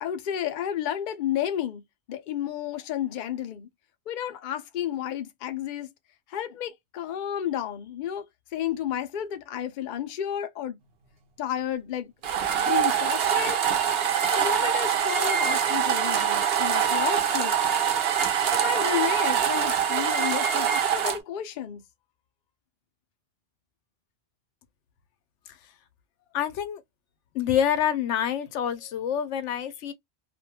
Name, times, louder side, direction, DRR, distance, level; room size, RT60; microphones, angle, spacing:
voice 1, 0.0-1.8 2.1-3.7 4.1-5.9 6.3-8.2 8.5-10.8 11.4-12.1 12.6-13.6 14.3-17.6 18.5-21.8, left 10 dB, 55° left, 0.6 m, -31 dB
sound 1, 12.2-21.2, right 8 dB, 65° right, 0.8 m, -24 dB
voice 2, 26.3-26.8 27.3-29.9, left 9 dB, 90° left, 0.9 m, -27 dB
2.5 x 2.2 x 2.7 m
omnidirectional pair, 1.2 m